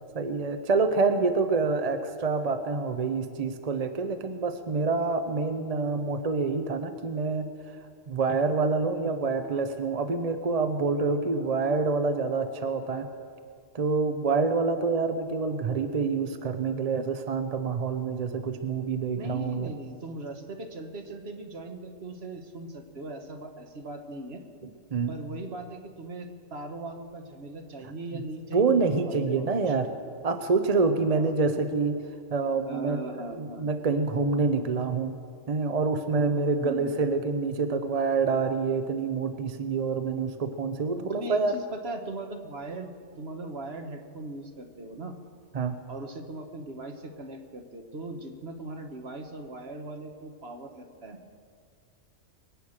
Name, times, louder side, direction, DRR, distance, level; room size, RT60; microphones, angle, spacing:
voice 1, 0.1-7.5 8.1-13.1 13.7-19.7 24.9-25.1 28.1-28.2 28.5-29.9 30.2-32.0 32.3-35.2 35.5-41.5 45.5-45.8, right 4 dB, 40° right, 8 dB, 0.7 m, -27 dB
voice 2, 19.1-24.4 25.1-29.9 31.1-31.3 32.6-33.7 36.6-36.9 41.0-45.1 45.9-51.2, right 2 dB, 55° right, 5 dB, 1.5 m, -39 dB
22.5 x 8.8 x 6.5 m, 2.2 s
omnidirectional pair, 1.3 m